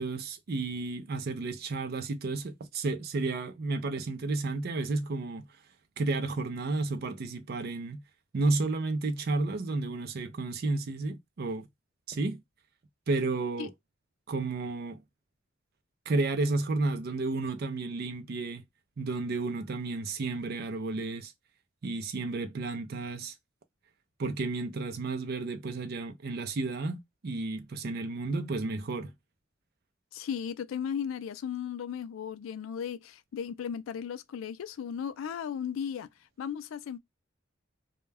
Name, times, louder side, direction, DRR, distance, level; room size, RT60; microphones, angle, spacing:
voice 1, 0.0-5.5 6.0-8.0 8.3-11.7 12.1-12.4 13.1-13.7 14.3-15.0 16.1-18.6 19.0-21.3 21.8-23.3 24.2-29.1, right 3 dB, 50° right, 0.4 m, -32 dB
voice 2, 30.1-36.1 36.4-37.0, left 8 dB, 75° left, 0.3 m, -36 dB
2.2 x 2.2 x 3.2 m
head